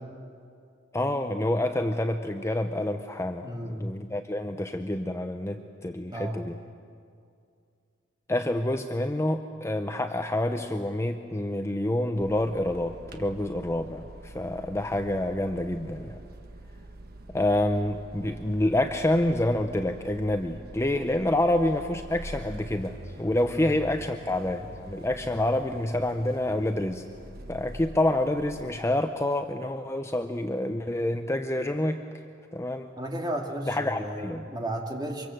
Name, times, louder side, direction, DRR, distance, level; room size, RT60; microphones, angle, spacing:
voice 1, 0.9-6.6 8.3-16.2 17.3-27.1 27.5-32.0 32.5-32.9 33.7-34.5, left 1 dB, 15° left, 6 dB, 0.7 m, -28 dB
voice 2, 3.4-3.9 6.1-6.5 23.5-23.7 33.0-35.3, right 1 dB, 20° right, 2 dB, 2.5 m, -33 dB
sound 1, 12.2-28.8, right 1 dB, 55° right, 1.4 m, -45 dB
25.0 x 23.5 x 7.8 m, 2.3 s
head